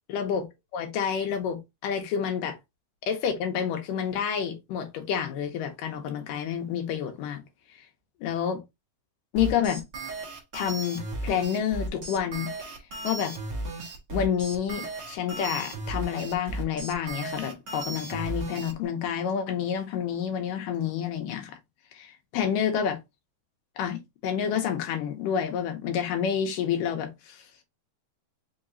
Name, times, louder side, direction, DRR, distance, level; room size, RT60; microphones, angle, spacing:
voice 1, 0.1-0.5 0.7-2.6 3.0-7.4 8.2-8.6 9.3-9.8 10.5-12.5 13.0-13.3 14.1-21.6 21.9-23.0 23.8-27.4, left 8 dB, 75° left, 2.3 m, -29 dB
sound 1, 9.4-18.7, right 2 dB, 85° right, 0.9 m, -35 dB
5.5 x 2.9 x 2.5 m
omnidirectional pair, 4.2 m